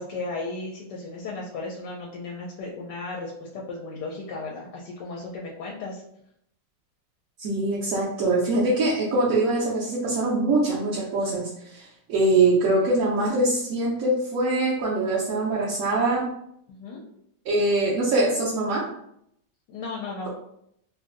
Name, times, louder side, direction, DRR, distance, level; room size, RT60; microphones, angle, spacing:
voice 1, 0.0-6.0 16.7-17.0 19.7-20.3, left 3 dB, 80° left, -2 dB, 1.2 m, -35 dB
voice 2, 7.4-16.3 17.4-18.8, right 2 dB, 65° right, -7 dB, 1.0 m, -23 dB
3.1 x 2.5 x 2.4 m, 0.74 s
omnidirectional pair, 1.9 m